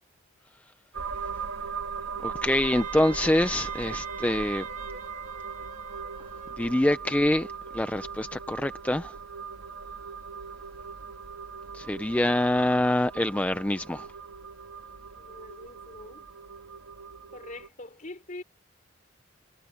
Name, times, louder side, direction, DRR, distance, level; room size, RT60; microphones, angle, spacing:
sound 1, 0.9-17.7, right 5 dB, 85° right, 1.4 m, -39 dB
voice 1, 2.2-4.6 6.6-7.5 7.7-9.1 11.7-14.1, left 1 dB, 5° left, 0.4 m, -25 dB
Wind instrument woodwind instrument, 2.5-6.7, right 5 dB, 40° right, 1.6 m, -43 dB
voice 2, 15.2-16.2 17.3-18.4, left 2 dB, 40° left, 4.3 m, -43 dB
head